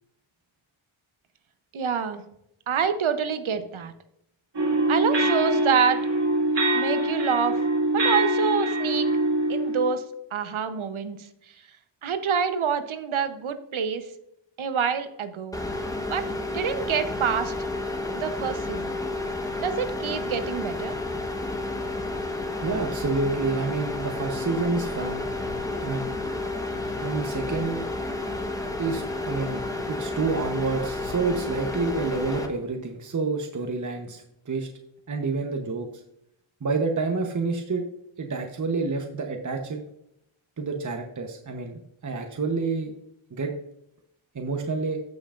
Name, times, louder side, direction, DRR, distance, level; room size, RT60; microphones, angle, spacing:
voice 1, 1.7-2.2 2.7-3.9 4.9-6.0 6.7-7.6 7.9-9.1 9.5-10.0 10.3-11.3 12.0-14.1 14.6-15.6 16.1-17.5 18.1-19.0 19.6-21.0, right 7 dB, 75° right, 10 dB, 0.9 m, -27 dB
sound 1, 4.5-9.9, right 1 dB, 60° right, 2.2 m, -24 dB
sound 2, 15.5-32.5, left 2 dB, 5° left, 1.2 m, -31 dB
voice 2, 22.6-25.3 25.8-26.2 27.0-27.9 28.8-34.7 35.1-35.9 36.6-37.8 38.2-39.8 40.6-42.9 43.3-43.5 44.3-45.0, right 4 dB, 40° right, 3 dB, 1.0 m, -28 dB
15.0 x 5.8 x 2.5 m, 0.78 s
wide cardioid pair, 80°, 48 cm